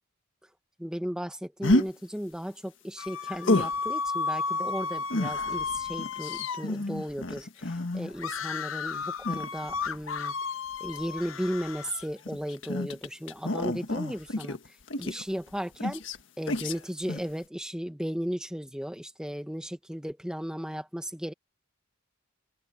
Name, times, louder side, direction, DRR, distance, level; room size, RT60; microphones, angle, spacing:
voice 1, 0.8-10.3 10.8-14.6 15.0-16.0 16.4-21.3, equal, 5° right, 1.7 m, -35 dB
sound 1, 1.6-1.9 3.4-3.8 5.1-8.2 9.2-10.0 10.9-11.1 11.9-15.5 15.8-16.2 16.5-16.8 17.1-17.3, left 1 dB, 70° left, 1.7 m, -30 dB
sound 2, 3.0-6.7 8.2-12.1, left 5 dB, 90° left, 0.9 m, -33 dB
head